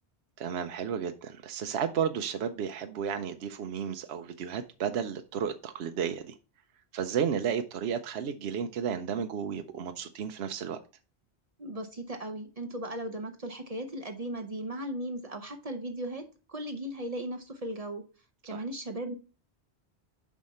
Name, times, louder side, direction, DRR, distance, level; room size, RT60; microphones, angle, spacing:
voice 1, 0.4-6.3 6.9-10.8 18.5-18.6, right 7 dB, 75° right, 0.9 m, -33 dB
voice 2, 11.6-18.0 18.4-19.1, right 1 dB, 40° right, 0.8 m, -37 dB
7.3 x 5.2 x 4.2 m
omnidirectional pair, 1.1 m